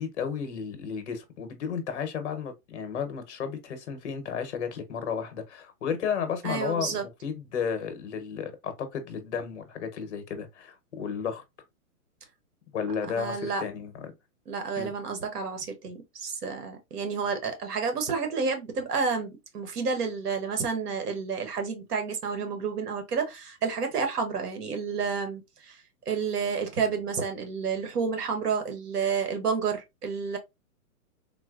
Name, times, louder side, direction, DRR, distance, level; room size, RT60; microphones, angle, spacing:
voice 1, 0.0-11.4 12.7-13.9 14.8-14.9, left 7 dB, 45° left, 0.9 m, -33 dB
voice 2, 6.4-7.1 13.2-13.6 14.5-25.8 26.1-30.4, right 5 dB, 75° right, 1.1 m, -30 dB
3.8 x 2.1 x 2.4 m
hypercardioid pair, 165°, 46 cm